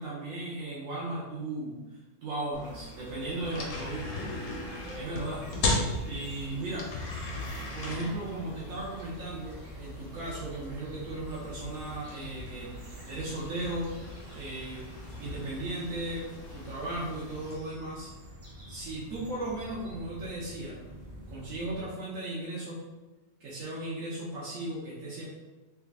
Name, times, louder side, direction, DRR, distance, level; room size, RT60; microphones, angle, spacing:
voice 1, 0.0-4.3 4.9-5.4 6.1-6.9 7.7-12.7 13.1-13.9 14.3-14.9 15.2-18.1 18.7-20.8 21.3-22.9 23.4-25.2, right 2 dB, 80° right, -7 dB, 1.2 m, -36 dB
sound 1, 2.5-17.6, left 2 dB, 70° left, 1.1 m, -38 dB
sound 2, 2.6-17.6, left 1 dB, 20° left, 1.2 m, -50 dB
sound 3, 4.4-21.8, equal, 40° right, 0.7 m, -48 dB
3.4 x 3.4 x 2.4 m, 1.2 s
omnidirectional pair, 1.4 m